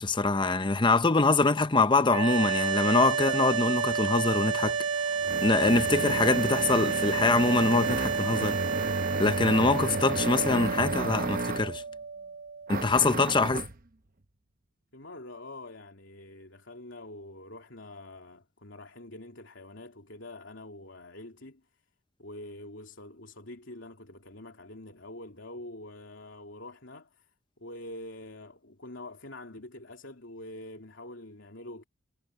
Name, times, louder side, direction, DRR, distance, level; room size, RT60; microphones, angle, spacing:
voice 1, 0.0-4.8 5.1-8.6 9.2-11.8 12.7-13.6, left 3 dB, 25° left, 0.7 m, -24 dB
sound 1, 2.1-13.2, right 6 dB, 75° right, 2.0 m, -30 dB
sound 2, 4.6-11.8 12.7-13.8, right 2 dB, 45° right, 1.0 m, -33 dB
voice 2, 14.9-21.6 22.2-27.3 27.6-31.8, left 1 dB, 70° left, 3.1 m, -45 dB
head